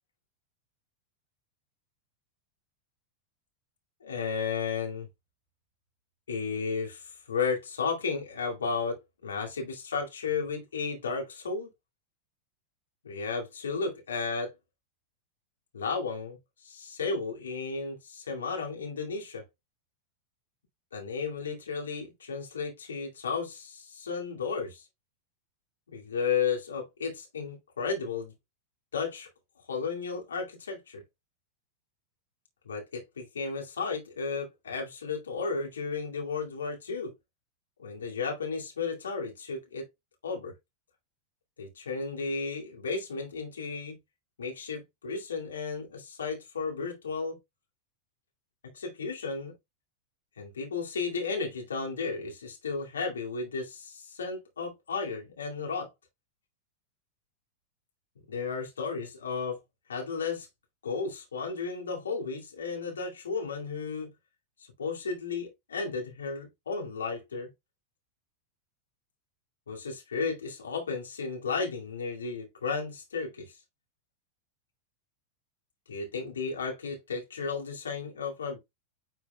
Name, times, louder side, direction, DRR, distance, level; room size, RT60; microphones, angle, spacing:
voice 1, 4.0-5.1 6.3-11.7 13.0-14.5 15.7-16.4 16.6-19.4 20.9-24.9 25.9-28.3 28.9-29.3 29.7-31.0 32.6-37.1 37.8-39.9 40.2-40.5 41.6-44.0 44.4-47.4 48.7-49.5 50.4-55.9 58.3-59.6 59.9-60.5 60.8-64.1 64.8-67.5 69.7-73.5 75.9-78.6, left 5 dB, 70° left, 2.3 m, -33 dB
9.7 x 4.6 x 2.3 m
figure-of-eight pair, 90°, 0 cm